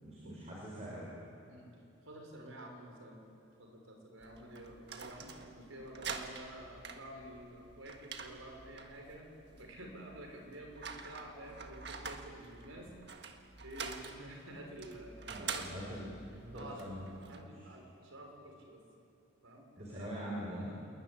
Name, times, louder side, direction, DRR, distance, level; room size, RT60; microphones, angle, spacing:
voice 1, 0.0-1.1 15.3-16.1 16.4-17.6 19.8-20.7, equal, 30° right, -4 dB, 5.8 m, -43 dB
voice 2, 2.0-3.2 3.6-12.9 13.6-16.0 16.5-16.9 17.3-18.8 19.4-20.1, right 1 dB, 85° right, 2 dB, 5.8 m, -50 dB
sound 1, 4.2-17.4, right 5 dB, 55° right, 1.7 m, -47 dB
27.5 x 21.0 x 9.9 m, 2.7 s
head